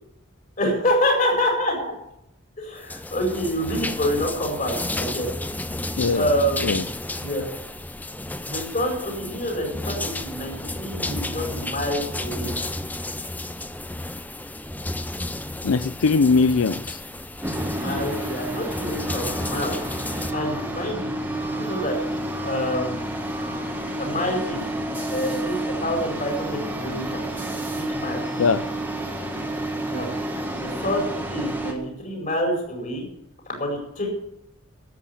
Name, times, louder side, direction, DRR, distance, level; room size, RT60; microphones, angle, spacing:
voice 1, 0.6-1.9 2.6-5.3 6.1-6.9 7.2-7.4 8.4-12.5 17.7-19.8 20.3-22.0 22.4-23.1 24.0-24.6 25.0-27.2 27.9-28.2 29.9-30.1 30.6-33.0 33.5-34.1, equal, 40° left, 1 dB, 5.1 m, -27 dB
sound 1, 2.8-20.3, left 1 dB, 10° left, 0.5 m, -32 dB
voice 2, 15.6-17.0 28.4-28.6, left 4 dB, 90° left, 14 dB, 0.5 m, -20 dB
sound 2, 17.4-31.7, right 1 dB, 10° right, 1.7 m, -30 dB
13.0 x 8.5 x 9.7 m, 0.80 s
head